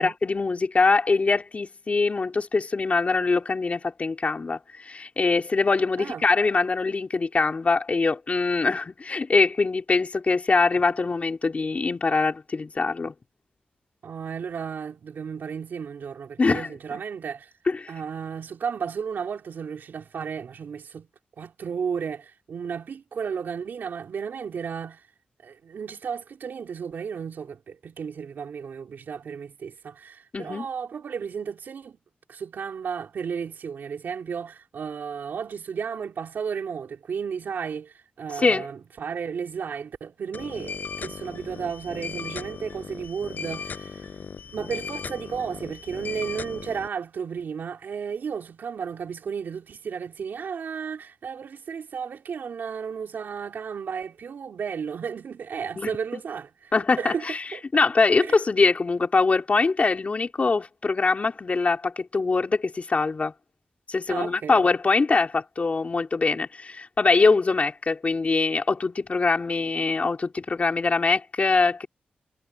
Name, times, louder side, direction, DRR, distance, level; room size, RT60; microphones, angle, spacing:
voice 1, 0.0-13.1 16.4-16.7 17.7-17.9 30.3-30.7 38.4-38.7 55.8-55.9 56.7-57.4 57.7-63.3 63.9-71.9, left 4 dB, 45° left, 4.0 m, -23 dB
voice 2, 14.0-17.5 17.9-21.1 21.4-25.0 25.4-32.0 32.3-44.1 44.5-56.7 57.0-57.2 57.5-57.6 58.2-58.4 64.1-64.6, right 6 dB, 85° right, 4.2 m, -33 dB
sound 1, 40.3-46.9, left 5 dB, 65° left, 8.0 m, -37 dB
wide cardioid pair, 85°, 3 cm